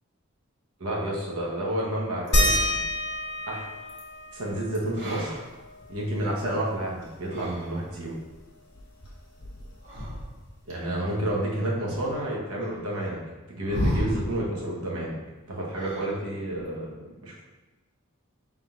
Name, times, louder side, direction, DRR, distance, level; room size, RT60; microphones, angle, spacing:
voice 1, 0.8-2.8 3.5-3.6 4.3-5.3 5.9-8.1 10.7-13.2 13.5-15.2 15.5-16.9 17.2-17.4, right 1 dB, 85° right, -4 dB, 1.0 m, -30 dB
sound 1, 2.2-3.0 3.8-4.0 4.7-6.4 7.1-7.8 9.7-10.7 11.9-12.0 13.6-14.5 15.7-16.3 16.6-16.9, equal, 60° right, 1.4 m, -33 dB
sound 2, 2.3-7.5 7.8-7.9 8.2-10.0 11.3-11.4 12.1-12.2, equal, 50° left, 1.1 m, -30 dB
5.6 x 3.6 x 2.4 m, 1.2 s
head